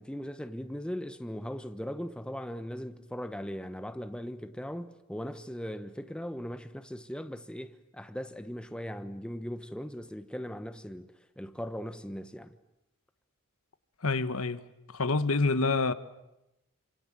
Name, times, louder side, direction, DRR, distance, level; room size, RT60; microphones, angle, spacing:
voice 1, 0.0-12.6, equal, 5° left, 1.1 m, -39 dB
voice 2, 14.0-14.6 14.9-15.9, left 3 dB, 80° left, 1.3 m, -27 dB
28.5 x 26.5 x 7.6 m
head